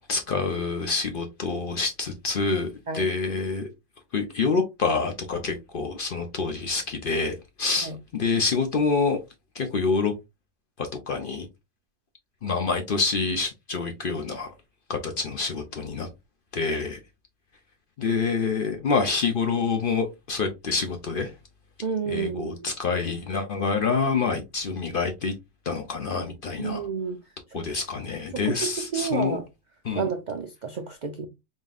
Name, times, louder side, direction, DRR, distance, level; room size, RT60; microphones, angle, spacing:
voice 1, 0.1-2.7 2.9-3.7 4.1-9.2 9.5-10.1 10.8-11.5 12.4-14.5 14.9-16.1 16.5-17.0 18.0-21.3 22.1-25.3 25.7-26.9 27.5-29.4 29.8-30.1, left 4 dB, 55° left, 0.6 m, -27 dB
voice 2, 21.8-22.7 26.6-27.2 27.5-27.8 28.3-29.4 29.9-31.3, right 6 dB, 65° right, 0.4 m, -30 dB
4.1 x 3.6 x 2.3 m
omnidirectional pair, 1.4 m